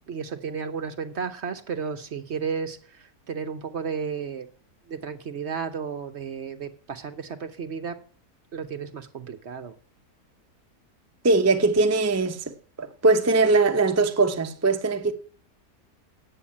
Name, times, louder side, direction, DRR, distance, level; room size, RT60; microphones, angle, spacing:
voice 1, 0.1-4.5 4.9-8.0 8.5-9.7, right 6 dB, 50° right, 1.0 m, -33 dB
voice 2, 11.2-12.5 12.8-15.1, right 3 dB, 15° right, 0.5 m, -21 dB
8.9 x 7.8 x 8.6 m
omnidirectional pair, 1.7 m